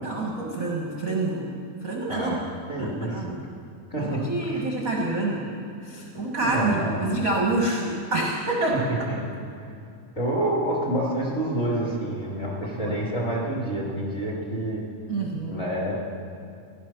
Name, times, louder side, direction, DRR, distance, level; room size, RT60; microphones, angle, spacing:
voice 1, 0.0-2.3 2.8-3.4 4.0-8.8 12.8-12.9 15.1-15.6, right 2 dB, 35° right, -3 dB, 1.4 m, -27 dB
voice 2, 2.1-2.4 2.7-3.3 3.9-4.3 4.5-4.7 6.1-7.1 8.7-9.3 10.2-14.8 15.5-15.9, right 1 dB, 25° left, -4 dB, 2.7 m, -28 dB
17.5 x 11.0 x 6.1 m, 2.5 s
omnidirectional pair, 3.5 m